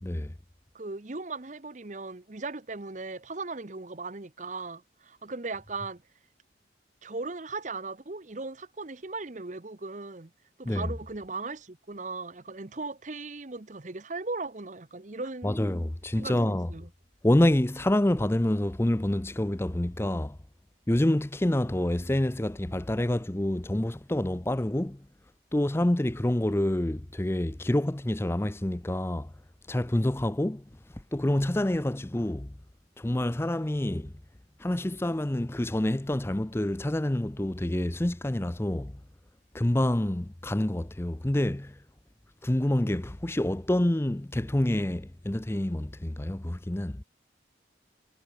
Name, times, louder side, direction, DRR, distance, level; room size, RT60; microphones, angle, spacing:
voice 1, 0.0-0.3 10.7-10.9 15.4-16.7 17.2-20.4 20.9-25.1 25.5-29.3 29.7-30.6 30.9-32.6 33.0-34.1 34.6-39.0 39.5-41.8 42.4-47.0, left 1 dB, 15° left, 0.5 m, -27 dB
voice 2, 0.7-6.0 7.0-10.3 10.6-15.8 16.2-16.9, right 3 dB, 40° right, 0.9 m, -38 dB
head